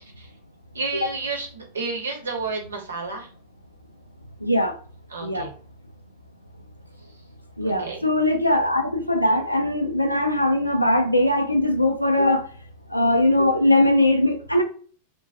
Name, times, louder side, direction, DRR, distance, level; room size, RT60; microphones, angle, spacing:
voice 1, 0.7-3.3 5.1-5.5 7.6-8.0, right 4 dB, 70° right, 0 dB, 0.7 m, -31 dB
voice 2, 4.4-4.7 5.2-5.5 7.6-12.4 12.9-14.6, left 1 dB, 85° left, 5 dB, 0.4 m, -20 dB
2.2 x 2.1 x 2.6 m, 0.43 s
figure-of-eight pair, 90°, 0 cm